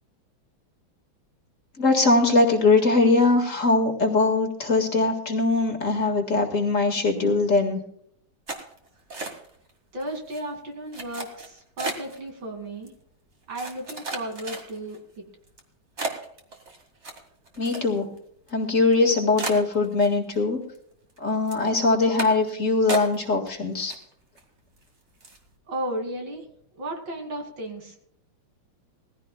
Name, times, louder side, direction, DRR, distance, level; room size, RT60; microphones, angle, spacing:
voice 1, 1.8-7.8 17.6-18.1 18.5-20.6 21.2-23.9, left 3 dB, 40° left, 2 dB, 2.2 m, -21 dB
sound 1, 8.5-9.7 10.0-10.4 10.9-12.2 12.9-13.0 13.5-15.0 15.5-15.6 16.0-18.2 18.5-18.6 18.9-19.0 19.4-20.4 20.7-21.2 21.5-21.7 22.2-22.5 22.9-23.5 23.8-24.4 24.8-24.9 25.2-25.5, right 3 dB, 35° right, 2.2 m, -34 dB
voice 2, 9.9-12.9 13.5-15.2 25.7-26.5 26.7-27.9, right 1 dB, 70° right, 3 dB, 3.3 m, -34 dB
19.5 x 15.5 x 2.3 m, 0.69 s
omnidirectional pair, 2.2 m